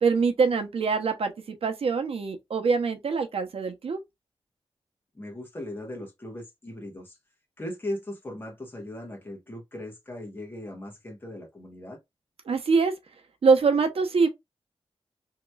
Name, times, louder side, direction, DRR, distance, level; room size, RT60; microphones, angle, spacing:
voice 1, 0.0-4.0 12.5-12.9 13.4-14.3, right 5 dB, 75° right, 0.7 m, -24 dB
voice 2, 5.1-7.2 7.6-12.0, left 1 dB, 20° left, 1.2 m, -38 dB
3.0 x 2.9 x 2.2 m
wide cardioid pair, 165°, 10 cm